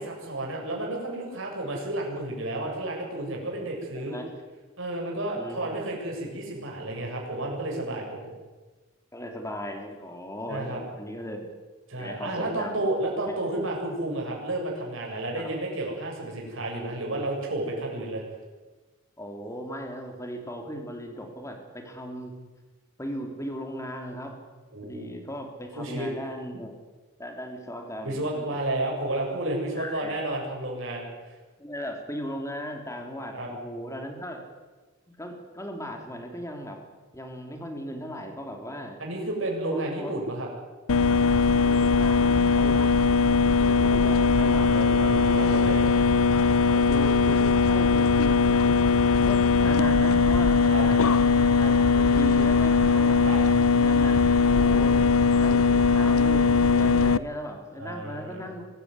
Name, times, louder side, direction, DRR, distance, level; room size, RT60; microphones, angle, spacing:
voice 1, 0.0-4.2 4.8-8.3 10.5-10.8 11.9-18.2 24.7-25.1 25.7-26.1 28.0-31.1 33.3-33.5 39.0-40.5 43.4-44.0 44.5-44.7 45.0-46.0 50.7-50.8 53.2-53.4 57.8-58.5, right 1 dB, 65° right, -1 dB, 7.6 m, -31 dB
voice 2, 3.9-4.3 5.3-5.7 9.1-11.5 12.0-12.8 15.3-15.5 19.2-22.3 23.0-24.4 24.8-26.7 27.2-28.5 29.7-30.1 31.6-34.4 35.1-36.8 37.1-39.0 39.7-40.1 41.6-43.1 43.7-45.2 46.7-51.2 51.6-53.2 53.7-55.0 55.4-58.6, equal, 15° left, 3 dB, 3.4 m, -37 dB
sound 1, 40.9-57.2, left 5 dB, 85° left, 0.7 m, -20 dB
24.0 x 15.0 x 9.8 m, 1.3 s
head